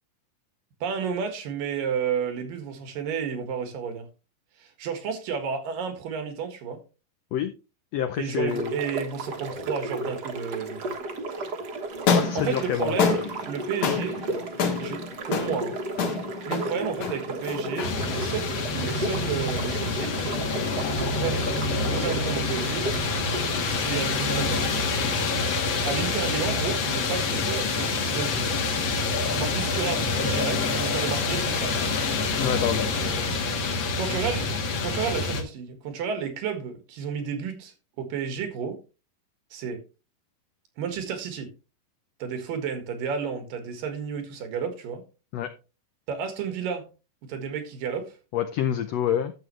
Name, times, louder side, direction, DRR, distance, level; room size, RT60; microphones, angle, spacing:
voice 1, 0.8-4.1 4.6-6.8 8.2-11.0 12.3-15.8 16.4-20.3 20.9-22.9 23.6-24.7 25.8-28.5 29.3-31.8 33.9-38.8 39.5-39.8 40.8-41.5 42.2-45.0 46.1-46.9 47.3-48.2, right 6 dB, 85° right, 3.5 m, -32 dB
voice 2, 7.9-8.7 12.1-12.9 32.4-32.9 45.3-45.5 48.3-49.3, left 10 dB, 80° left, 1.4 m, -27 dB
sound 1, 8.5-23.8, right 2 dB, 50° right, 1.3 m, -34 dB
sound 2, 11.9-20.2, left 5 dB, 65° left, 2.8 m, -29 dB
sound 3, 17.8-35.4, left 3 dB, 45° left, 1.8 m, -27 dB
11.5 x 7.8 x 3.2 m
omnidirectional pair, 3.8 m